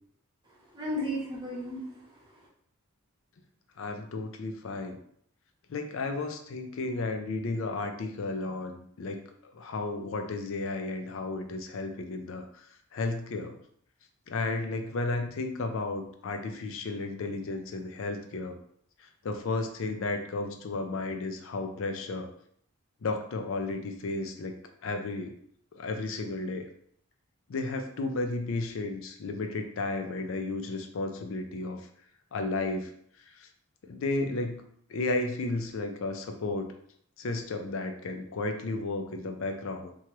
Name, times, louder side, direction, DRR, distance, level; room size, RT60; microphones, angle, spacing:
voice 1, 0.5-2.5, equal, 20° right, -6 dB, 1.0 m, -35 dB
voice 2, 3.8-5.0 5.7-9.2 9.5-12.7 12.9-13.6 14.3-18.6 19.2-22.3 23.0-24.5 24.8-25.3 25.7-26.6 27.5-31.9 32.3-32.9 33.4-33.5 33.8-34.6 34.9-36.7 37.2-39.9, left 2 dB, 60° left, 5 dB, 0.4 m, -33 dB
3.0 x 2.3 x 2.9 m, 0.66 s
head